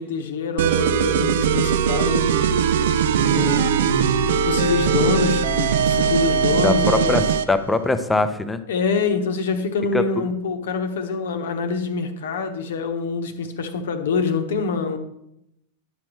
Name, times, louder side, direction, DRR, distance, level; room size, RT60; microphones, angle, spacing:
voice 1, 0.0-2.5 3.3-7.2 8.7-15.0, left 5 dB, 60° left, 8 dB, 0.9 m, -25 dB
sound 1, 0.6-7.5, right 7 dB, 60° right, 0.4 m, -20 dB
voice 2, 6.5-7.2 7.5-8.6 9.9-10.0, left 2 dB, 10° left, 11 dB, 0.6 m, -21 dB
11.0 x 6.1 x 3.1 m, 0.83 s
figure-of-eight pair, 90°, 0 cm